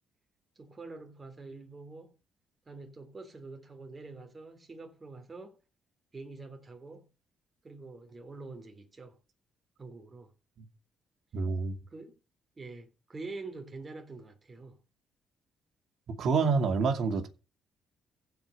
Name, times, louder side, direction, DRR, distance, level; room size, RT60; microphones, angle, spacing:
voice 1, 0.5-2.1 2.7-5.6 6.1-7.1 7.6-9.2 9.8-10.3 11.9-12.2 12.6-14.8, right 3 dB, 30° right, 3.3 m, -46 dB
voice 2, 11.3-11.8 16.1-17.3, right 4 dB, 65° right, 2.5 m, -27 dB
15.5 x 5.3 x 6.6 m
cardioid pair, 90°, 0 cm